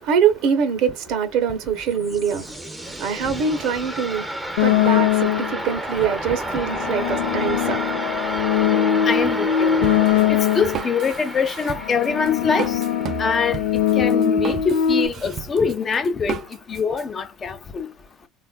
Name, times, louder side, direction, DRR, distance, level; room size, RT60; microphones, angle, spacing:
voice 1, 0.0-2.6 3.0-8.3 8.6-8.7, right 7 dB, 65° right, 0.8 m, -24 dB
sound 1, 1.7-14.4, right 1 dB, 5° right, 0.6 m, -31 dB
sound 2, 4.6-5.6 6.4-10.9 11.7-15.1, left 9 dB, 85° left, 0.3 m, -21 dB
voice 2, 9.0-9.8 10.3-12.8 13.2-13.6 14.0-16.4 16.7-17.9, left 5 dB, 35° left, 0.6 m, -23 dB
Drum kit, 9.8-17.0, right 9 dB, 50° right, 0.3 m, -34 dB
3.3 x 2.4 x 2.3 m
supercardioid pair, 85°, 0 cm